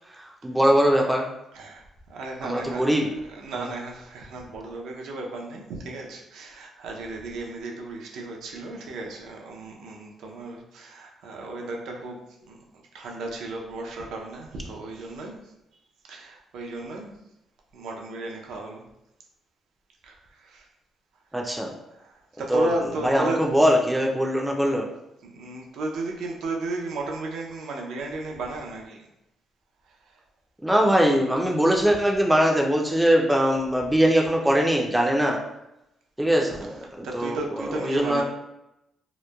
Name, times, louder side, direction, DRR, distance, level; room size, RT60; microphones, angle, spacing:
voice 1, 0.1-1.3 2.4-3.1 3.5-3.7 21.3-21.7 22.5-24.9 30.6-35.5 36.2-38.2, equal, 10° right, 0 dB, 0.4 m, -22 dB
voice 2, 2.1-2.8 3.3-12.2 12.5-12.6 12.9-15.4 16.1-17.2 17.7-18.8 20.0-20.1 20.4-20.6 22.4-23.4 25.3-29.0 37.0-38.2, right 2 dB, 80° right, 0 dB, 0.5 m, -34 dB
2.9 x 2.1 x 2.2 m, 0.88 s
cardioid pair, 90°, 0 cm